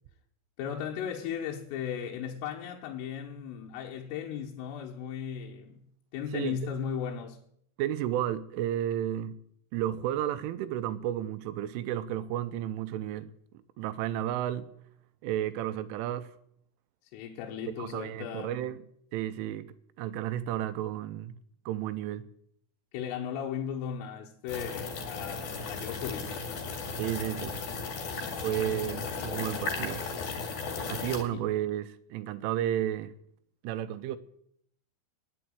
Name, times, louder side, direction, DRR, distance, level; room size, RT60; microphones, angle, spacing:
voice 1, 0.6-5.8 6.1-7.4 17.1-18.6 22.9-26.4 28.8-29.1 31.3-31.4, left 8 dB, 80° left, 3.6 m, -36 dB
voice 2, 6.3-6.7 7.8-9.4 9.7-13.3 13.8-14.7 15.2-16.3 17.8-18.8 19.1-21.4 21.7-22.3 27.0-27.6 28.4-30.0 30.9-33.2 33.6-34.2, right 12 dB, 80° right, 3.0 m, -32 dB
sound 1, 24.5-31.2, left 4 dB, 55° left, 3.5 m, -36 dB
11.0 x 10.0 x 8.8 m
omnidirectional pair, 5.9 m